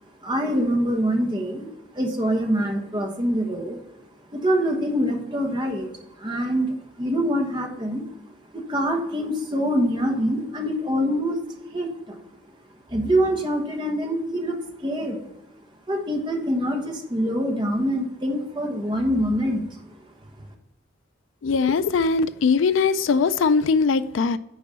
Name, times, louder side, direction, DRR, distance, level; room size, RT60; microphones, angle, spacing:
voice 1, 0.2-1.7 1.9-3.8 4.3-5.9 6.2-8.0 8.5-11.4 11.7-12.2 12.9-15.2 15.9-19.6, equal, 25° right, 1.4 m, -25 dB
voice 2, 21.4-24.4, left 5 dB, 75° left, 0.4 m, -20 dB
10.0 x 4.6 x 5.5 m
head